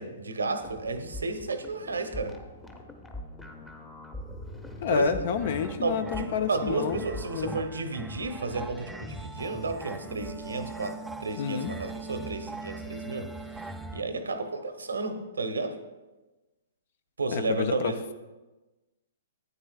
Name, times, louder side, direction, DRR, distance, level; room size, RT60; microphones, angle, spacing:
voice 1, 0.0-2.4 4.9-5.1 5.8-13.3 13.9-15.8 17.2-18.0, right 3 dB, 90° right, 7 dB, 0.9 m, -32 dB
sound 1, 0.6-7.5, left 1 dB, 10° left, 0.9 m, -43 dB
voice 2, 4.8-7.0 7.3-7.6 11.4-11.7 17.3-18.1, left 6 dB, 55° left, 10 dB, 0.5 m, -29 dB
sound 2, 5.3-14.0, right 3 dB, 5° right, 0.3 m, -40 dB
11.0 x 9.0 x 2.3 m, 1.1 s
hypercardioid pair, 130°, 0 cm